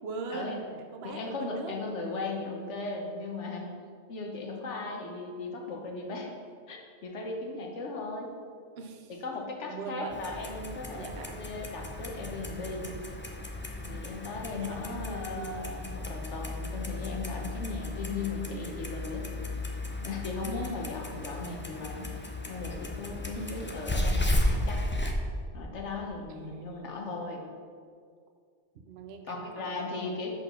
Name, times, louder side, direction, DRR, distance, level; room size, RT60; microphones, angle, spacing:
voice 1, 0.0-1.7 8.8-9.1 9.7-10.2 10.9-11.4 14.6-14.8 15.0-15.6 20.5-20.9 23.4-23.7 26.3-27.0 28.8-30.3, right 4 dB, 65° right, 4 dB, 0.9 m, -41 dB
voice 2, 1.0-3.7 4.1-6.3 6.7-8.3 9.1-11.1 11.4-12.9 13.8-19.3 20.0-22.1 22.5-24.8 25.5-27.5 29.3-30.3, left 3 dB, 85° left, 1 dB, 1.3 m, -37 dB
Clock, 10.1-25.1, left 1 dB, 20° left, 0.3 m, -34 dB
5.5 x 4.6 x 6.1 m, 2.2 s
omnidirectional pair, 1.2 m